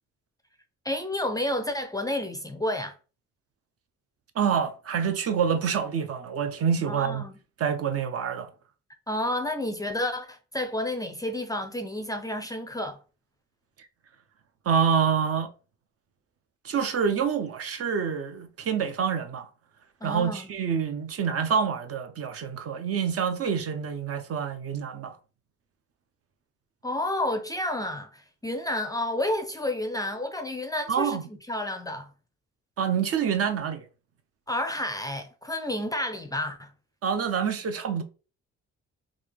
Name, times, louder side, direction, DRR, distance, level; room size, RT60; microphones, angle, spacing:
voice 1, 0.8-2.9 6.8-7.3 9.1-13.0 20.0-20.4 26.8-31.2 31.5-32.1 34.5-36.7, left 1 dB, 10° left, 0.5 m, -30 dB
voice 2, 4.3-7.2 7.6-8.5 14.6-15.5 16.6-19.5 20.0-25.2 30.9-31.2 32.8-33.8 37.0-38.0, right 7 dB, 50° right, 0.6 m, -27 dB
3.7 x 2.4 x 3.2 m
cardioid pair, 90°, 30 cm